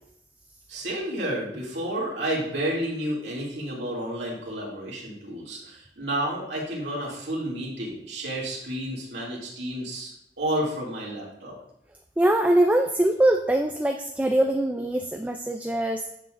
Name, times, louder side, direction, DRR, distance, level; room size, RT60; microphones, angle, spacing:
voice 1, 0.7-10.1 10.4-11.6, right 1 dB, 85° right, -3 dB, 2.6 m, -31 dB
voice 2, 12.2-16.1, right 1 dB, 10° right, 4 dB, 0.3 m, -22 dB
9.0 x 7.2 x 2.5 m, 0.80 s
head